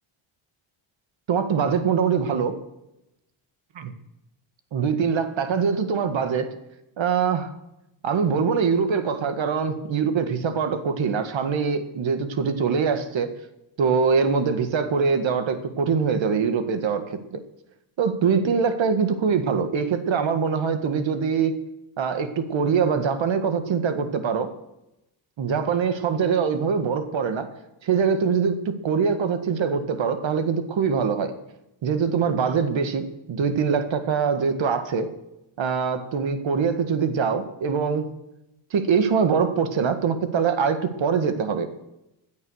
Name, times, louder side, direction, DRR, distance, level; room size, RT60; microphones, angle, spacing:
voice 1, 1.3-2.6 3.8-3.9 4.7-6.5 7.0-7.5 8.0-13.3 13.8-17.4 18.0-21.5 22.0-24.5 25.4-27.5 27.8-31.3 31.8-35.1 35.6-38.1 38.7-41.7, right 6 dB, 65° right, 9 dB, 1.8 m, -23 dB
16.5 x 9.6 x 6.4 m, 0.90 s
cardioid pair, 95°, 49 cm